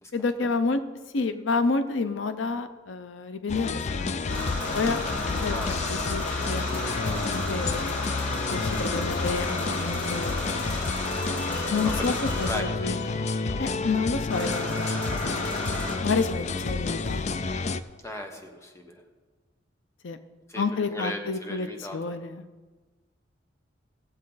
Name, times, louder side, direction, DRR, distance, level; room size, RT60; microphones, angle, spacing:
voice 1, 0.1-0.8 1.1-4.5 4.7-8.0 8.5-10.6 11.7-13.3 13.6-15.5 16.0-17.4 20.0-20.2 20.6-22.4, left 4 dB, 90° left, 10 dB, 0.6 m, -30 dB
sound 1, 3.5-17.8, left 4 dB, 40° left, 0.4 m, -30 dB
sound 2, 4.3-12.6 14.3-16.0, left 1 dB, 65° left, 2.8 m, -33 dB
voice 2, 5.5-6.1 11.6-12.1 12.5-12.9 18.0-19.0 20.5-22.0, left 1 dB, 15° left, 3 dB, 1.2 m, -37 dB
17.5 x 7.5 x 4.0 m, 1.3 s
head